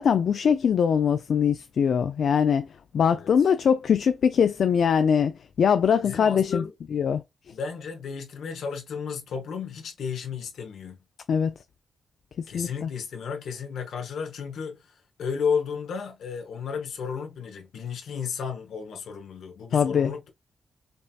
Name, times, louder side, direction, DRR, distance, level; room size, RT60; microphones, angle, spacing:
voice 1, 0.0-2.7 2.9-6.6 6.9-7.2 11.3-11.5 12.4-12.9 19.7-20.1, left 7 dB, 70° left, 0.3 m, -22 dB
voice 2, 3.1-3.5 6.0-6.7 7.5-11.0 12.5-20.3, left 6 dB, 90° left, 1.0 m, -33 dB
5.2 x 2.8 x 2.3 m
cardioid pair, 85°, 0 cm